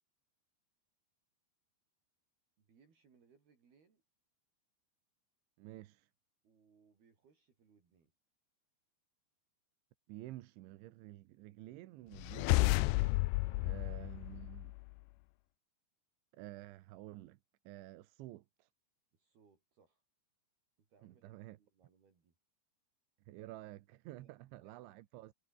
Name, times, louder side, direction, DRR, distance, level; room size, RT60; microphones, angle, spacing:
voice 1, 2.6-4.0 6.4-8.1 13.4-13.8 19.1-20.0 20.8-22.3 24.1-25.0, right 5 dB, 60° right, 6.7 m, -69 dB
voice 2, 5.6-6.1 10.1-13.2 13.6-14.8 16.3-17.4 17.7-18.7 21.0-21.6 23.3-25.3, right 16 dB, 85° right, 3.5 m, -51 dB
sound 1, 12.1-14.9, left 22 dB, 80° left, 2.6 m, -32 dB
omnidirectional pair, 5.2 m